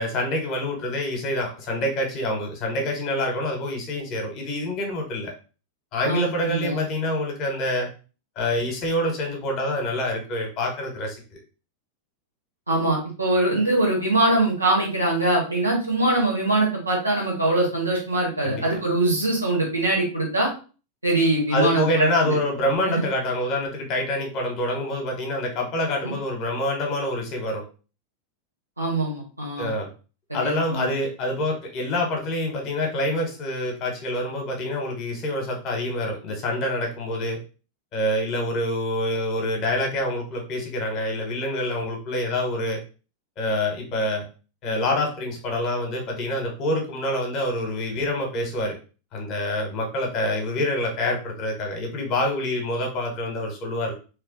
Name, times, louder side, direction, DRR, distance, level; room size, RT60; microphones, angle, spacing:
voice 1, 0.0-5.3 5.9-7.9 8.3-11.4 18.4-18.8 21.5-27.6 29.6-29.9 30.3-37.4 37.9-42.8 43.4-44.2 44.6-48.8 49.1-53.9, left 1 dB, 35° left, 2 dB, 1.3 m, -26 dB
voice 2, 6.0-6.8 12.7-20.5 21.0-22.3 22.9-23.0 26.0-26.1 28.8-29.7 30.3-30.9, right 2 dB, 85° right, -3 dB, 1.8 m, -23 dB
3.2 x 3.0 x 3.8 m, 0.35 s
figure-of-eight pair, 90°, 0 cm